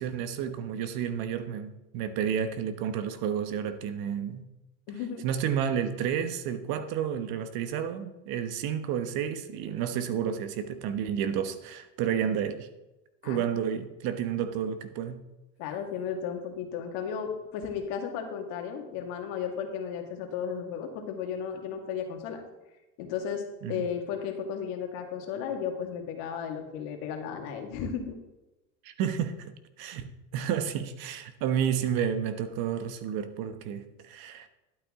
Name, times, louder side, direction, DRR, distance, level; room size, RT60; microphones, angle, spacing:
voice 1, 0.0-4.4 5.2-12.7 13.2-15.2 23.6-23.9 28.8-29.5 29.8-34.5, right 8 dB, 65° right, 1.2 m, -31 dB
voice 2, 4.9-5.2 13.2-13.5 15.6-22.4 23.0-28.1, left 7 dB, 75° left, 2.0 m, -34 dB
12.0 x 8.6 x 3.7 m
supercardioid pair, 105°, 39 cm